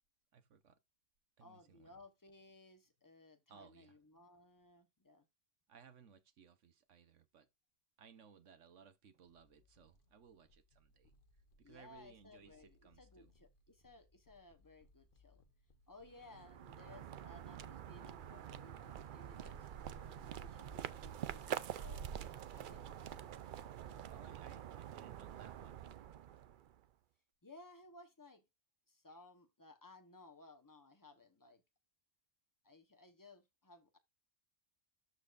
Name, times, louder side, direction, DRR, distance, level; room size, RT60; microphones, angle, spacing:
voice 1, 0.3-0.8 1.4-1.9 3.5-3.9 5.7-7.5 8.0-11.1 11.6-13.3 24.1-25.8, right 6 dB, 90° right, 1.4 m, -62 dB
voice 2, 1.4-5.2 11.6-15.4 15.9-21.5 21.7-22.8 27.4-28.4 28.9-31.6 32.6-34.0, left 2 dB, 15° left, 1.1 m, -60 dB
sound 1, 9.3-24.6, left 3 dB, 45° left, 1.2 m, -69 dB
sound 2, 16.1-26.9, right 9 dB, 60° right, 0.6 m, -47 dB
13.0 x 4.5 x 2.5 m
omnidirectional pair, 1.2 m